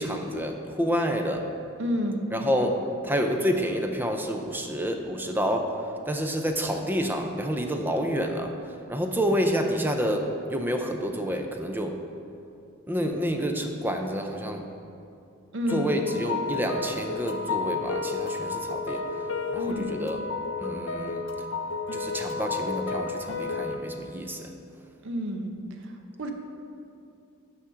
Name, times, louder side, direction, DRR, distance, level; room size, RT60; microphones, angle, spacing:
voice 1, 0.0-1.4 2.3-2.8 3.0-5.7 6.1-8.5 8.9-12.0 12.9-14.7 15.7-19.0 19.5-20.2 20.6-21.3 21.9-24.5, equal, 10° right, 4 dB, 0.5 m, -28 dB
voice 2, 1.8-2.2 15.5-15.9 19.6-19.9 25.0-25.5 25.8-25.9 26.2-26.3, equal, 60° right, 4 dB, 0.8 m, -29 dB
sound 1, 15.7-23.8, left 4 dB, 65° left, 0.5 m, -31 dB
6.3 x 5.9 x 5.6 m, 2.6 s
head